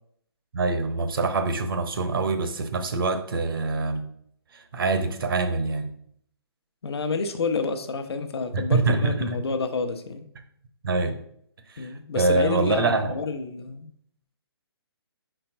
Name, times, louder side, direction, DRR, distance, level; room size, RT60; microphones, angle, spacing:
voice 1, 0.5-4.1 4.5-5.9 8.5-9.4 10.8-11.2 11.7-13.2, right 3 dB, 55° right, 8 dB, 0.8 m, -25 dB
voice 2, 6.8-10.3 11.8-13.9, left 4 dB, 70° left, 8 dB, 0.8 m, -29 dB
5.1 x 4.5 x 4.4 m, 0.69 s
hypercardioid pair, 170°, 14 cm